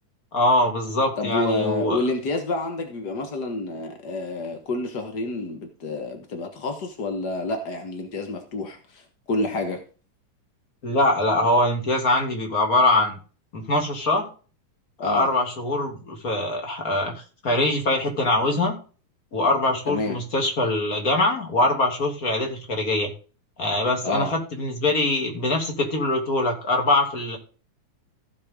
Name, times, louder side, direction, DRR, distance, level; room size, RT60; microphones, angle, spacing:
voice 1, 0.3-2.0 10.8-13.2 13.5-14.3 15.0-18.8 19.3-23.1 23.6-27.4, left 2 dB, 25° left, 2 dB, 2.6 m, -23 dB
voice 2, 1.2-9.8 15.0-15.3 19.9-20.2 24.0-24.3, left 2 dB, 55° left, 5 dB, 1.1 m, -28 dB
15.5 x 6.9 x 3.7 m, 0.37 s
omnidirectional pair, 4.1 m